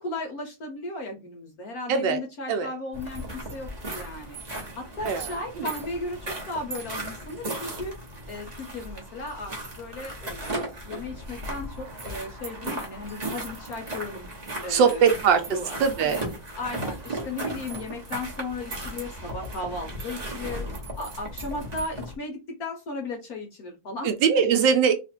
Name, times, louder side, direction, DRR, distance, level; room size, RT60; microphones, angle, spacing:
voice 1, 0.0-4.4 4.8-7.9 8.3-14.3 14.6-16.2 16.6-20.6 21.0-24.1, left 2 dB, 65° left, 1.0 m, -36 dB
voice 2, 1.9-2.2 2.5-2.7 5.0-5.7 14.7-16.2 24.0-24.9, right 6 dB, 75° right, 1.2 m, -22 dB
sound 1, 2.9-22.1, right 1 dB, 35° right, 0.6 m, -36 dB
3.1 x 2.5 x 4.2 m
omnidirectional pair, 2.2 m